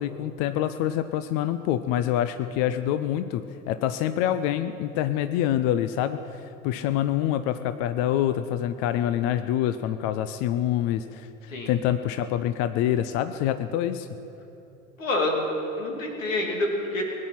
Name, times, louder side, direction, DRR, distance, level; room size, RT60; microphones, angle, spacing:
voice 1, 0.0-14.1, left 11 dB, 40° left, 11 dB, 0.6 m, -26 dB
voice 2, 15.0-15.5 15.8-17.0, left 2 dB, 70° left, 1 dB, 2.8 m, -27 dB
20.5 x 9.7 x 5.9 m, 2.9 s
figure-of-eight pair, 75°, 40 cm